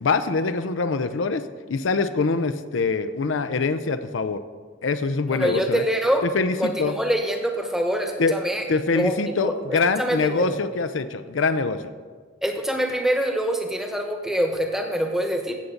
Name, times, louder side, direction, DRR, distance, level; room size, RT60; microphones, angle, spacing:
voice 1, 0.0-1.4 1.7-4.4 4.8-5.8 6.2-7.0 8.2-8.3 8.7-11.8, left 4 dB, 85° left, 10 dB, 0.6 m, -24 dB
voice 2, 5.3-6.3 6.6-8.7 8.9-9.1 9.4-10.6 12.4-15.5, equal, ahead, 3 dB, 1.0 m, -25 dB
16.0 x 7.1 x 3.9 m, 1.5 s
head